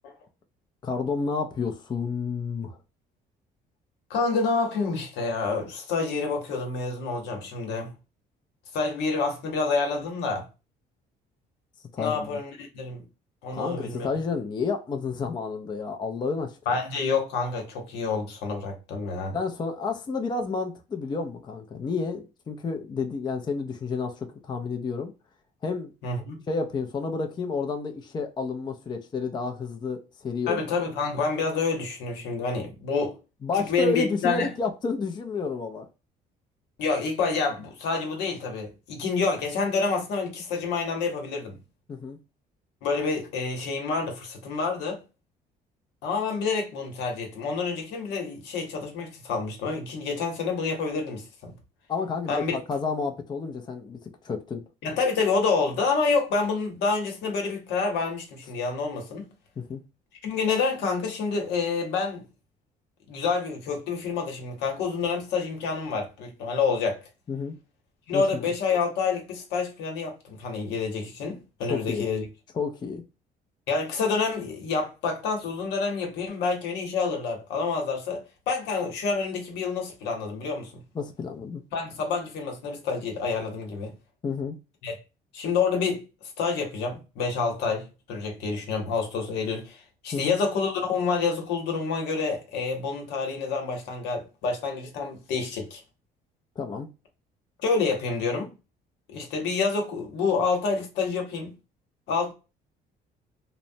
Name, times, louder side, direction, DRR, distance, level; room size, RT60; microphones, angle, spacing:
voice 1, 0.8-2.8 11.9-12.4 13.5-16.8 19.3-25.1 25.6-25.9 26.5-30.6 33.4-35.9 41.9-42.2 51.9-54.6 59.6-59.8 67.3-67.5 68.1-68.4 71.7-72.1 72.5-73.0 80.9-81.6 84.2-84.6 90.1-90.4 96.6-96.9, left 4 dB, 25° left, 0.4 m, -30 dB
voice 2, 4.1-7.9 8.7-10.5 12.0-13.0 13.4-14.1 16.7-19.4 26.0-26.4 30.5-33.1 33.7-34.5 36.8-41.6 42.8-45.0 46.0-51.5 52.3-52.6 54.8-59.3 60.2-62.2 63.1-67.0 68.1-72.3 73.7-80.8 81.7-83.9 84.8-85.0 85.3-86.0 86.4-95.8 97.6-98.5 99.1-101.6 102.1-102.3, left 4 dB, 85° left, 1.0 m, -28 dB
3.0 x 2.0 x 2.6 m
cardioid pair, 110°, 17 cm